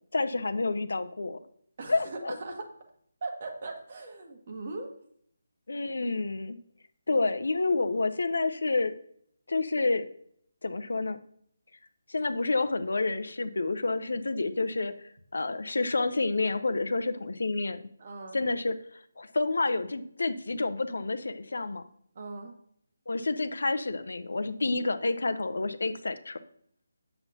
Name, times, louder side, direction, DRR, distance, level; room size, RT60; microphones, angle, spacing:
voice 1, 0.1-1.4 1.9-2.3 5.7-6.6 7.1-8.9 9.5-10.0 10.6-11.2 12.1-17.8 18.3-18.8 19.2-21.8 23.1-26.4, left 3 dB, 75° left, 11 dB, 0.6 m, -29 dB
voice 2, 1.8-2.7 3.2-4.9 18.0-18.4 22.1-22.5, right 3 dB, 45° right, 3 dB, 1.3 m, -39 dB
7.1 x 6.8 x 2.8 m, 0.66 s
figure-of-eight pair, 160°, 0 cm